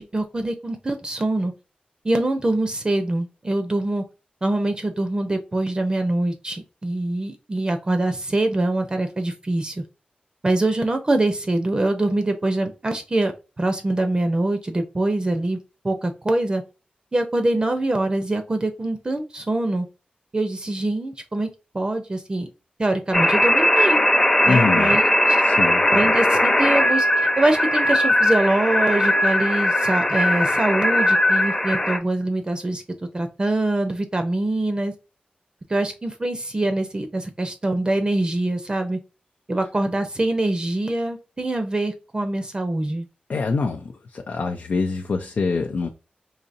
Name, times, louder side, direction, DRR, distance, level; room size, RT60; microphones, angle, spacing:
voice 1, 0.0-1.5 2.0-4.0 4.4-9.8 10.4-15.6 15.8-16.6 17.1-19.9 20.3-21.5 21.7-22.5 22.8-24.0 24.4-25.4 25.9-27.1 27.4-32.8 33.1-34.9 35.7-39.0 39.5-43.1, right 2 dB, 30° right, 7 dB, 0.6 m, -24 dB
sound 1, 23.1-32.0, left 1 dB, 20° left, 0.8 m, -19 dB
voice 2, 24.5-24.9 25.4-26.0 43.3-45.9, left 4 dB, 65° left, 3 dB, 0.5 m, -24 dB
4.0 x 2.7 x 2.5 m, 0.30 s
wide cardioid pair, 120°, 3 cm